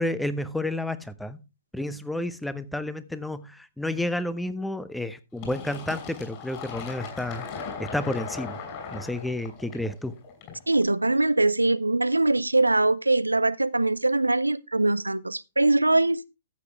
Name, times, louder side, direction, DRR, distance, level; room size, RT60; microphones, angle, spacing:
voice 1, 0.0-1.4 1.7-7.5 7.8-8.6 8.9-10.1, left 1 dB, 5° left, 0.8 m, -30 dB
Fill (with liquid), 5.4-10.8, left 5 dB, 35° left, 5.7 m, -38 dB
voice 2, 10.7-16.2, right 2 dB, 90° right, 0.4 m, -22 dB
14.0 x 7.9 x 3.3 m
figure-of-eight pair, 115°, 0 cm